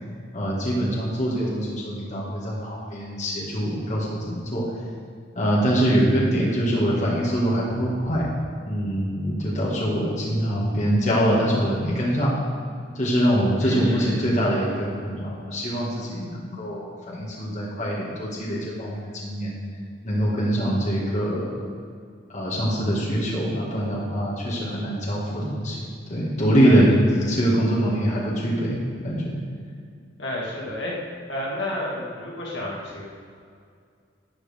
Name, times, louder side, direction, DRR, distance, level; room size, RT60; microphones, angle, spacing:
voice 1, 0.3-4.6 5.4-8.3 8.7-12.3 12.9-19.5 20.0-21.6 22.3-26.9 27.3-29.4, equal, 40° left, -6 dB, 1.8 m, -24 dB
voice 2, 13.6-14.1 26.6-27.3 30.2-30.9 31.3-33.1, left 1 dB, 70° left, -4 dB, 2.2 m, -31 dB
12.5 x 8.7 x 3.5 m, 2.2 s
head